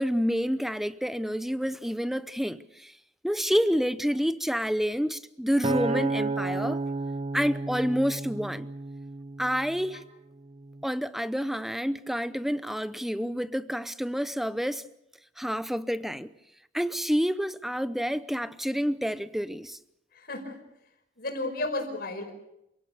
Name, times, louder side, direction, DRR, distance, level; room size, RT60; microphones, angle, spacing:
voice 1, 0.0-2.9 3.2-6.8 7.3-8.7 9.4-10.0 10.8-14.9 15.4-16.3 16.7-19.8, equal, ahead, 0.7 m, -28 dB
Acoustic guitar, 5.6-10.0 10.6-10.8, right 3 dB, 35° right, 0.8 m, -32 dB
voice 2, 20.1-20.6 21.2-22.3, left 2 dB, 60° left, 5.2 m, -33 dB
28.5 x 17.5 x 6.8 m
head